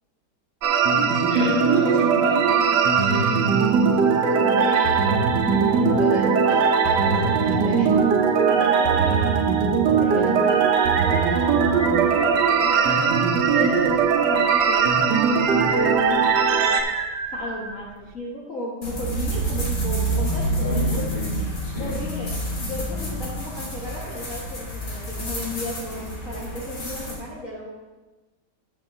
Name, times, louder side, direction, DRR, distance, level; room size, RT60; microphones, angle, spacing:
sound 1, 0.6-16.8, right 6 dB, 80° right, 1.4 m, -20 dB
voice 1, 0.9-3.7 7.1-7.3 20.6-22.0, left 2 dB, 25° left, -5 dB, 2.3 m, -32 dB
voice 2, 4.2-8.0 8.2-9.3 9.8-16.8 17.3-21.1 21.8-27.7, left 2 dB, 50° left, -6 dB, 1.8 m, -34 dB
sound 2, 10.8-18.1, right 4 dB, 60° right, 0.8 m, -30 dB
sound 3, 18.8-27.2, right 1 dB, 80° left, 2.7 m, -28 dB
11.0 x 8.0 x 2.7 m, 1.2 s
omnidirectional pair, 1.9 m